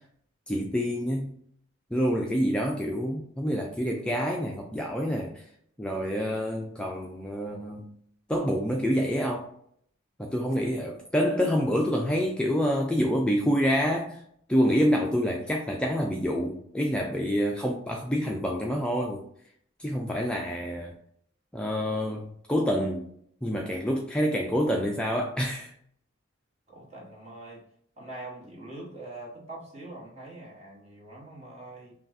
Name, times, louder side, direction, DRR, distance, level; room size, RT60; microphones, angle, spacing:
voice 1, 0.5-1.3 1.9-5.4 5.8-7.9 8.3-9.5 10.2-14.2 14.5-19.2 19.8-20.9 21.5-23.1 23.4-25.7, equal, 5° left, 0 dB, 0.3 m, -27 dB
voice 2, 26.7-27.6 28.0-31.9, right 2 dB, 35° right, -4 dB, 1.4 m, -43 dB
5.7 x 2.4 x 2.6 m, 0.66 s
head